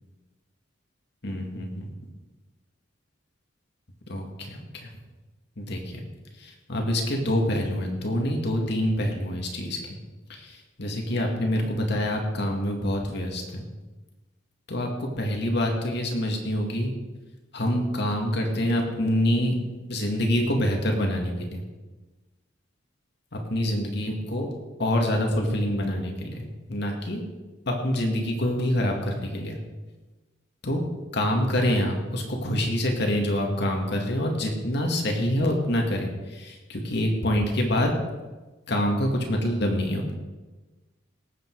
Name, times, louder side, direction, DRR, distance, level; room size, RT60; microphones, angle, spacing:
voice 1, 1.2-1.9 4.1-4.9 5.6-6.0 6.4-9.8 10.3-13.7 14.7-16.9 17.5-19.5 19.9-21.6 23.3-24.5 24.8-27.2 27.7-29.6 30.6-30.9 31.1-38.0 38.7-40.1, left 1 dB, 60° left, 2 dB, 2.2 m, -26 dB
18.5 x 8.3 x 4.8 m, 1.2 s
head